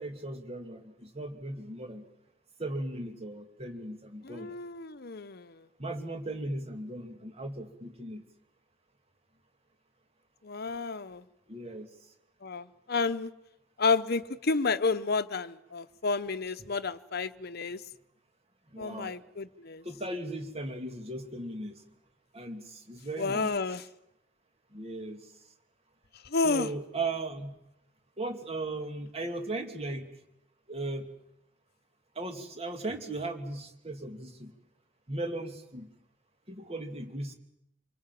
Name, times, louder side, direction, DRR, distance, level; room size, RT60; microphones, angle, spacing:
voice 1, 0.0-2.1 2.6-4.5 5.8-8.2 11.5-11.9 16.6-16.7 18.7-19.2 19.8-21.8 22.3-23.6 24.7-25.3 26.4-27.6 28.2-30.1 30.7-31.1 32.1-34.5 35.1-35.9 36.5-37.3, right 2 dB, 30° right, 2.7 m, -37 dB
voice 2, 4.2-5.6 10.4-11.2 12.4-13.3 13.8-17.8 18.8-19.8 23.2-23.8 26.2-26.7, left 4 dB, 50° left, 0.9 m, -31 dB
26.5 x 23.5 x 7.7 m
head